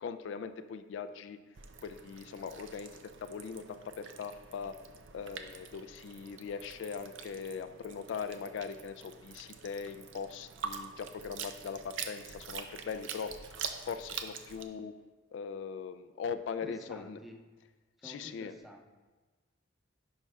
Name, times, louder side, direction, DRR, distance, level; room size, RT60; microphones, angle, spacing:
voice 1, 0.0-1.4 1.8-2.9 3.2-4.8 5.1-13.6 13.8-14.9 15.3-17.2 18.0-18.5, left 6 dB, 70° left, 11 dB, 0.3 m, -40 dB
sound 1, 1.5-14.6, right 6 dB, 75° right, 0.5 m, -45 dB
voice 2, 16.6-17.5 18.0-18.9, equal, ahead, 2 dB, 0.5 m, -50 dB
10.5 x 5.5 x 2.3 m, 1.3 s
head